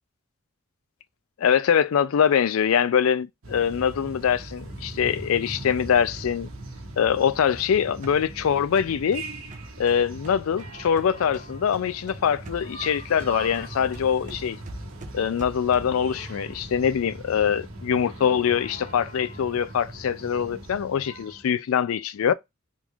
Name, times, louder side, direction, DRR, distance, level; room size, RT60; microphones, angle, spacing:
voice 1, 1.4-6.5 7.0-9.2 9.8-14.6 15.1-22.3, left 8 dB, 80° left, 0.4 m, -23 dB
sound 1, 3.4-21.4, right 2 dB, 80° right, 1.0 m, -40 dB
sound 2, 7.2-11.5 11.7-16.1, right 2 dB, 35° right, 0.7 m, -45 dB
3.7 x 3.1 x 2.4 m
head